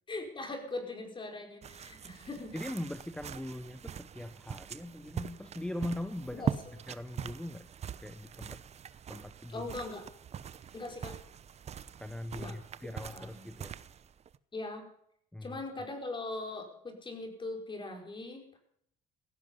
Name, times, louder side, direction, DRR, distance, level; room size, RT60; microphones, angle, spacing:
voice 1, 0.1-2.6 6.3-6.5 9.5-10.0 10.7-11.2 12.3-12.6 13.1-13.5 14.5-14.9 15.4-18.6, left 2 dB, 30° left, 3 dB, 5.0 m, -40 dB
sound 1, 1.6-14.4, right 8 dB, 40° right, 0.8 m, -42 dB
voice 2, 2.5-6.4 6.9-7.7 8.0-8.6 9.1-9.7 12.0-13.8 15.3-15.6, left 1 dB, 5° left, 10 dB, 0.9 m, -41 dB
16.0 x 15.5 x 5.5 m, 0.69 s
cardioid pair, 110°, 17 cm